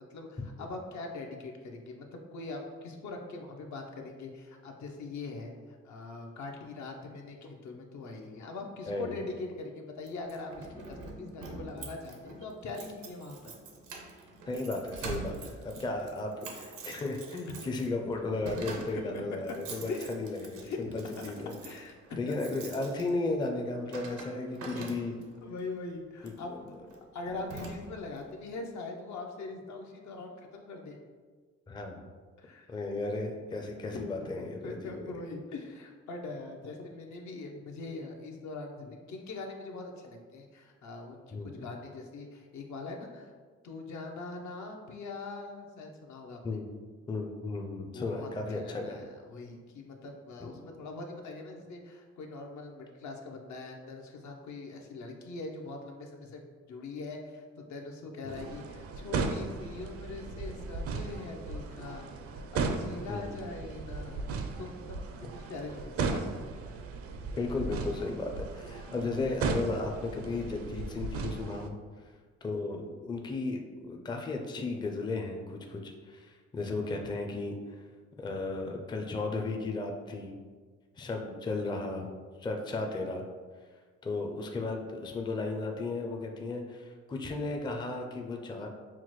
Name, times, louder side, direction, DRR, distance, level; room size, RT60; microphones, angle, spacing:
voice 1, 0.0-13.5 17.5-17.6 18.9-19.2 19.9-20.1 20.6-20.8 21.6-22.4 23.9-24.0 25.4-26.5 27.1-31.0 32.4-32.7 33.9-43.3 43.6-46.6 47.9-56.4 56.7-64.3 64.6-66.2, left 3 dB, 70° left, 2 dB, 0.7 m, -42 dB
voice 2, 8.9-9.2 14.5-21.6 22.2-25.2 26.2-26.6 31.7-32.1 32.7-35.0 41.3-41.5 46.4-46.7 47.1-49.0 50.4-50.5 58.2-58.4 63.1-63.3 67.3-71.8 72.4-77.8 78.2-80.4 81.0-82.1 82.4-83.3 84.0-88.7, left 3 dB, 15° left, 2 dB, 0.4 m, -35 dB
Keys jangling, 10.1-25.4 26.2-26.4 26.9-27.0 27.3-28.2, right 3 dB, 85° right, 0.7 m, -45 dB
sound 1, 58.3-71.7, right 4 dB, 50° right, 0.4 m, -36 dB
5.8 x 2.1 x 3.1 m, 1.5 s
cardioid pair, 90°, 30 cm